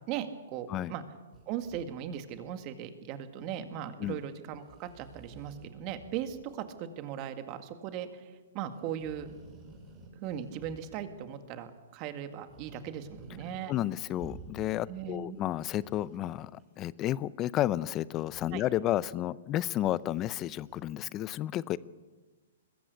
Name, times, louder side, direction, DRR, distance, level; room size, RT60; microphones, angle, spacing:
voice 1, 0.1-1.0 1.5-9.3 10.1-13.7 14.9-15.4 18.5-18.6, right 9 dB, 35° right, 8 dB, 2.0 m, -38 dB
sound 1, 1.3-2.5 4.1-4.3 4.5-6.5 6.8-6.9 8.7-11.3 12.4-13.6 13.9-14.8 15.2-16.6 18.1-18.6 19.7-20.8, right 4 dB, 20° right, 6.0 m, -53 dB
voice 2, 13.7-21.8, left 13 dB, 25° left, 20 dB, 0.6 m, -32 dB
21.5 x 15.0 x 8.3 m, 1.3 s
hypercardioid pair, 135°, 0 cm